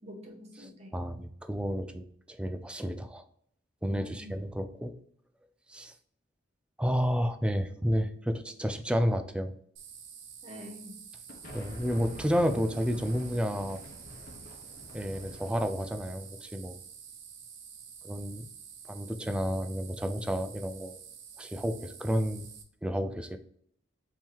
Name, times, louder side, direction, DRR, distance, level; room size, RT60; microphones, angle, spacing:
voice 1, 0.0-0.9 3.8-4.5 10.4-11.0, equal, 35° right, -1 dB, 1.2 m, -46 dB
voice 2, 0.6-3.2 3.8-4.9 5.7-5.9 6.8-9.5 11.5-13.8 14.9-16.8 18.0-18.5 18.9-21.0 21.4-22.5 22.8-23.4, equal, 5° right, 8 dB, 0.3 m, -31 dB
sound 1, 9.8-22.6, right 7 dB, 75° right, 0.8 m, -49 dB
sound 2, 11.3-16.3, left 1 dB, 50° left, 0.9 m, -46 dB
3.6 x 2.8 x 4.5 m, 0.64 s
head